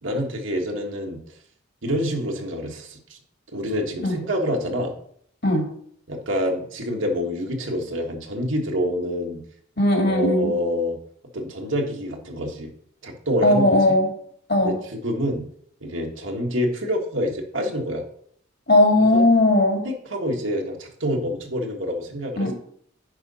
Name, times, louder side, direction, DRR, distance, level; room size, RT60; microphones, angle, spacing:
voice 1, 0.0-1.2 1.8-3.2 3.5-4.9 6.1-9.4 10.0-11.0 11.3-12.7 13.0-13.9 14.6-15.4 15.8-18.0 19.1-19.2 19.8-22.5, equal, 70° right, 1 dB, 1.6 m, -27 dB
voice 2, 9.8-10.5 13.4-14.1 14.5-14.8 18.7-19.8 22.4-22.5, left 1 dB, 50° left, 3 dB, 1.9 m, -18 dB
10.5 x 5.2 x 4.2 m, 0.64 s
head